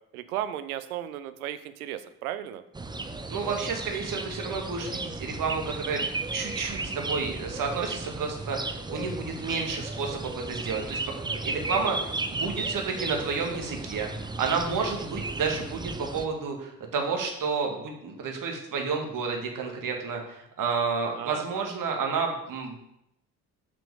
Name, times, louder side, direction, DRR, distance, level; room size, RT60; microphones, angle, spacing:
voice 1, 0.1-2.6 15.0-15.1 21.1-21.7, right 11 dB, 75° right, 13 dB, 0.7 m, -35 dB
sound 1, 2.7-16.3, right 3 dB, 10° right, 0.7 m, -34 dB
voice 2, 3.3-6.0 6.3-11.0 11.3-14.1 14.4-22.8, right 5 dB, 45° right, 2 dB, 2.0 m, -30 dB
7.5 x 5.9 x 4.9 m, 0.80 s
figure-of-eight pair, 50°, 44 cm